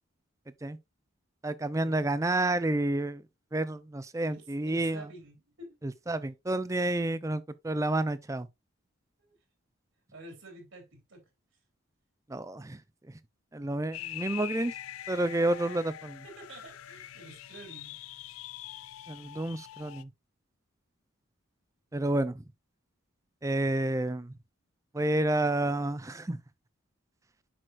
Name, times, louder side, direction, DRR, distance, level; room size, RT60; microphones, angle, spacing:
voice 1, 1.4-3.2 3.5-5.1 5.8-8.5 12.3-12.8 13.1-13.2 13.5-14.7 15.1-16.2 19.1-20.1 21.9-22.4 23.4-24.3 24.9-26.4, right 1 dB, 15° right, 0.4 m, -30 dB
voice 2, 4.3-5.8 9.2-9.3 10.1-11.2 16.2-18.0, right 2 dB, 65° right, 3.2 m, -49 dB
sound 1, 13.9-20.0, left 12 dB, 80° left, 0.4 m, -43 dB
7.7 x 6.1 x 2.5 m
head